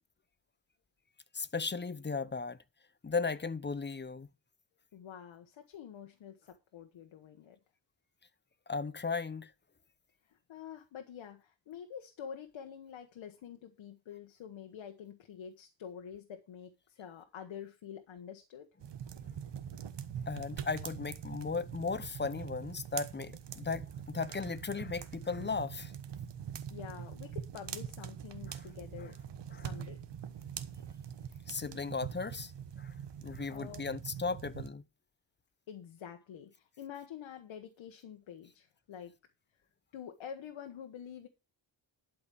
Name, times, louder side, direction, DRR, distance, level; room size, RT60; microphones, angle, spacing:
voice 1, 1.3-2.6 3.0-4.3 8.7-9.5 20.3-25.9 28.5-28.6 29.5-29.6 31.5-32.5 32.8-32.9 33.2-34.8, left 4 dB, 25° left, 0.8 m, -36 dB
voice 2, 4.9-7.6 10.3-18.7 26.7-29.2 29.5-30.0 33.5-33.9 35.7-39.1 39.9-41.3, left 8 dB, 85° left, 1.4 m, -47 dB
sound 1, 18.8-34.7, right 8 dB, 65° right, 1.3 m, -43 dB
11.5 x 5.4 x 6.9 m
cardioid pair, 90°, 46 cm